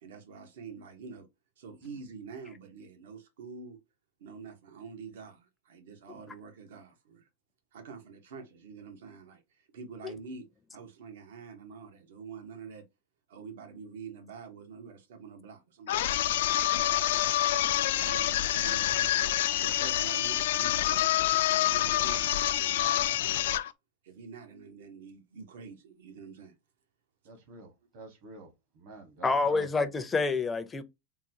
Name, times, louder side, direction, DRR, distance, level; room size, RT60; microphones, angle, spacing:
voice 1, 0.0-1.3 1.6-3.8 4.2-7.3 7.7-10.5 10.7-12.8 13.3-17.3 17.8-19.3 19.6-21.0 21.5-23.6 24.0-26.5 27.8-27.9, right 5 dB, 80° right, 0.9 m, -46 dB
sound 1, 15.9-23.7, left 13 dB, 80° left, 0.3 m, -27 dB
voice 2, 27.2-28.5 28.7-29.7, right 2 dB, 60° right, 1.4 m, -48 dB
voice 3, 29.2-30.8, left 3 dB, 15° left, 0.5 m, -28 dB
3.7 x 2.3 x 2.7 m
supercardioid pair, 145°, 0 cm